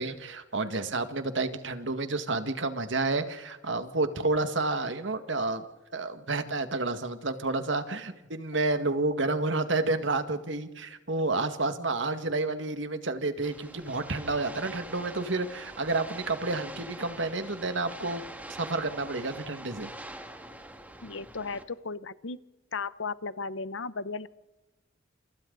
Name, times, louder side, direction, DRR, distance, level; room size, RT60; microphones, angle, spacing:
voice 1, 0.0-5.6 5.9-18.2 18.6-19.9, right 3 dB, 70° right, 8 dB, 2.0 m, -30 dB
sound 1, 13.4-21.6, right 1 dB, 10° right, 2.3 m, -44 dB
voice 2, 21.0-22.4 22.7-24.3, left 4 dB, 80° left, 16 dB, 0.9 m, -35 dB
29.5 x 28.0 x 4.1 m, 1.0 s
head